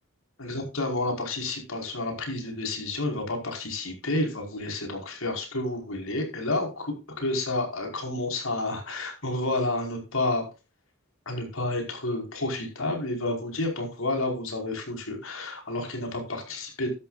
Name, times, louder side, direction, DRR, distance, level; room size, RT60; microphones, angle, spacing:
voice 1, 0.4-10.5 11.2-16.9, left 2 dB, 80° left, 3 dB, 5.0 m, -30 dB
13.5 x 12.0 x 2.5 m, 0.29 s
head